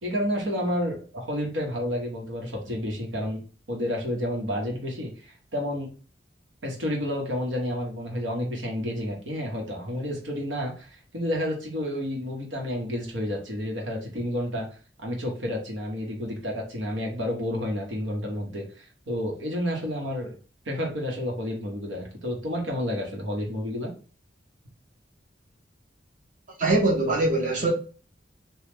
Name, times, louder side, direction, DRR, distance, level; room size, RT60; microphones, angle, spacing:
voice 1, 0.0-3.4 3.7-5.9 6.6-14.7 15.0-20.4 20.7-23.9, equal, 85° right, 1.1 m, -30 dB
voice 2, 26.6-27.7, right 2 dB, 45° right, 0.8 m, -22 dB
3.1 x 2.3 x 3.4 m
head